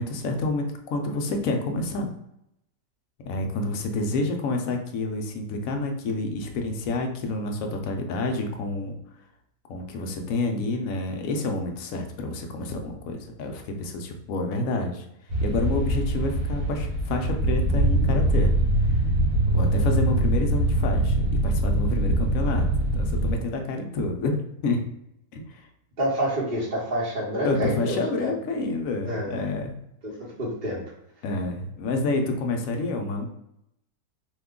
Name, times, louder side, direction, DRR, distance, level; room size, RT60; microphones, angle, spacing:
voice 1, 0.0-2.1 3.2-9.0 9.7-15.0 15.4-18.5 19.5-21.2 21.4-24.8 25.3-25.6 27.4-29.8 31.2-33.3, left 2 dB, 70° left, 3 dB, 0.9 m, -28 dB
sound 1, 15.3-23.3, right 1 dB, 60° right, 1.4 m, -23 dB
voice 2, 26.0-28.3 29.0-29.4 30.0-30.1 30.4-30.8, equal, 40° right, -7 dB, 0.9 m, -28 dB
2.8 x 2.2 x 3.6 m, 0.80 s
omnidirectional pair, 1.7 m